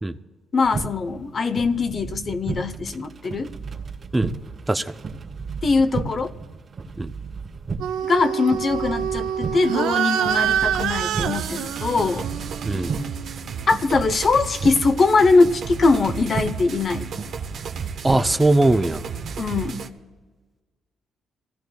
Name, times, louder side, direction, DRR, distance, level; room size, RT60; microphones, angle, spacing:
voice 1, 0.5-3.5 5.6-6.4 8.1-12.3 13.7-17.1 19.4-19.8, left 4 dB, 45° left, 10 dB, 0.8 m, -21 dB
sound 1, 0.6-19.7, right 4 dB, 45° right, 2.0 m, -34 dB
sound 2, 7.8-13.6, right 9 dB, 90° right, 0.4 m, -26 dB
sound 3, 10.7-19.9, right 6 dB, 65° right, 1.0 m, -34 dB
voice 2, 18.0-19.0, right 2 dB, 15° right, 9 dB, 0.6 m, -20 dB
25.0 x 16.5 x 2.3 m, 1.3 s
cardioid pair, 90°, 0 cm